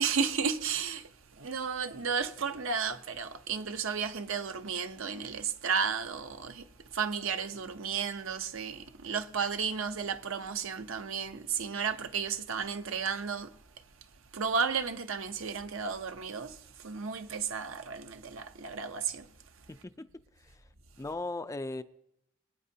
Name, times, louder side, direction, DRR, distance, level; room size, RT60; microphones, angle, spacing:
voice 1, 0.0-19.7, right 6 dB, 65° right, 0.8 m, -33 dB
voice 2, 19.7-20.1 20.4-20.6 21.0-21.8, left 2 dB, 15° left, 0.4 m, -38 dB
25.0 x 9.6 x 2.8 m
head